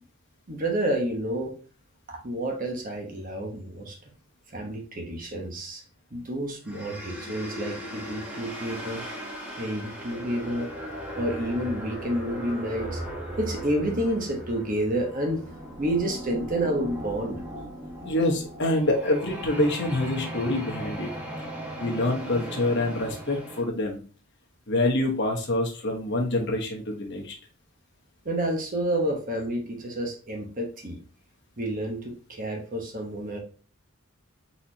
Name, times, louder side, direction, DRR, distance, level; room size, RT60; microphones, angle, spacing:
voice 1, 0.5-1.5 2.1-3.9 4.5-5.8 6.1-9.0 9.6-10.7 11.2-13.0 13.4-15.4 15.8-17.4 28.2-31.0 31.6-33.4, right 1 dB, 35° right, 2 dB, 1.0 m, -29 dB
sound 1, 6.6-23.6, equal, 5° right, 1.0 m, -37 dB
voice 2, 18.0-21.1 21.8-24.0 24.7-27.3, left 1 dB, 50° left, 1 dB, 1.1 m, -26 dB
4.3 x 4.1 x 2.8 m, 0.37 s
head